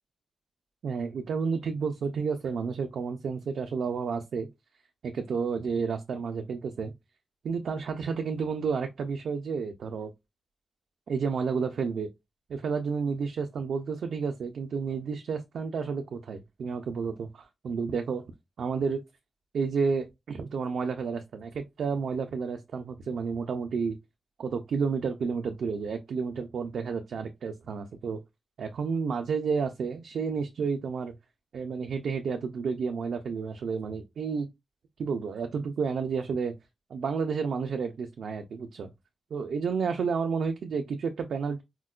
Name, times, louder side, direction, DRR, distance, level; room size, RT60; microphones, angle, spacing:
voice 1, 0.8-4.5 5.0-6.9 7.4-10.1 11.1-12.1 12.5-18.2 18.6-19.0 19.5-24.0 24.4-28.2 28.6-31.1 31.5-34.5 35.0-36.5 36.9-38.9 39.3-41.6, right 5 dB, 75° right, 0.4 m, -31 dB
4.3 x 2.1 x 2.3 m
wide cardioid pair, 175°, 0 cm